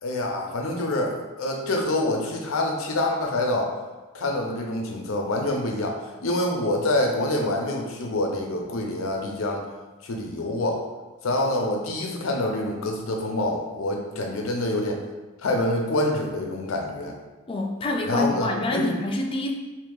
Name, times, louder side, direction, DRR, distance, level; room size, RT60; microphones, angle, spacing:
voice 1, 0.0-3.7 4.1-9.7 10.0-10.8 11.2-15.0 15.4-17.1 18.0-19.0, left 1 dB, 85° left, 1 dB, 0.6 m, -26 dB
voice 2, 17.5-19.5, left 2 dB, 25° left, 1 dB, 0.4 m, -26 dB
2.8 x 2.8 x 3.8 m, 1.2 s
head